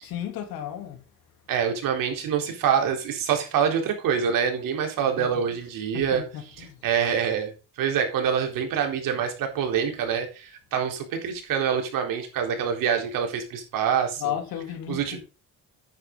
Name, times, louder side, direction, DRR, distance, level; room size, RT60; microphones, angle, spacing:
voice 1, 0.0-1.0 5.2-5.4 5.9-6.8 14.2-15.2, left 10 dB, 80° left, 3.3 m, -34 dB
voice 2, 1.5-6.2 6.6-7.5 7.8-14.3 14.9-15.2, right 7 dB, 70° right, 4.1 m, -26 dB
9.9 x 8.9 x 4.0 m
cardioid pair, 105°, 35 cm